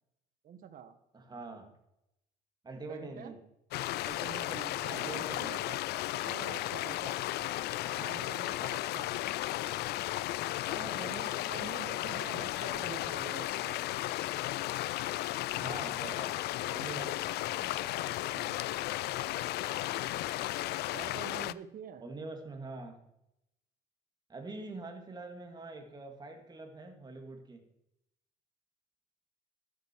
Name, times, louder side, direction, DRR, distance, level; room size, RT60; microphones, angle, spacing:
voice 1, 0.4-1.0 2.8-3.3 4.0-5.8 6.2-7.1 7.4-7.5 7.9-9.3 11.0-13.8 18.2-18.6 20.9-22.1, right 8 dB, 55° right, 10 dB, 1.4 m, -47 dB
voice 2, 1.1-1.7 2.6-3.4 4.9-5.7 6.1-6.5 10.7-11.8 12.4-12.6 15.6-16.4 16.7-18.0 22.0-23.0 24.3-27.6, right 3 dB, 25° right, 4 dB, 2.3 m, -45 dB
sound 1, 3.7-21.5, left 16 dB, 75° left, 0.4 m, -34 dB
13.0 x 9.3 x 4.7 m, 0.82 s
cardioid pair, 110°, 17 cm